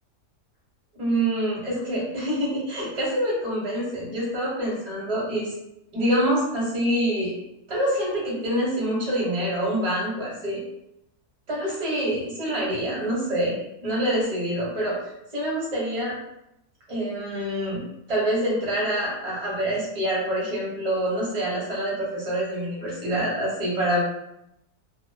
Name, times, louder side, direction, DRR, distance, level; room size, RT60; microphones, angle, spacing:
voice 1, 0.9-5.5 5.9-7.3 7.7-10.6 11.5-13.6 13.8-15.0 15.3-16.2 16.9-17.8 18.1-24.0, equal, 30° right, -6 dB, 0.8 m, -26 dB
2.4 x 2.3 x 2.2 m, 0.83 s
omnidirectional pair, 1.7 m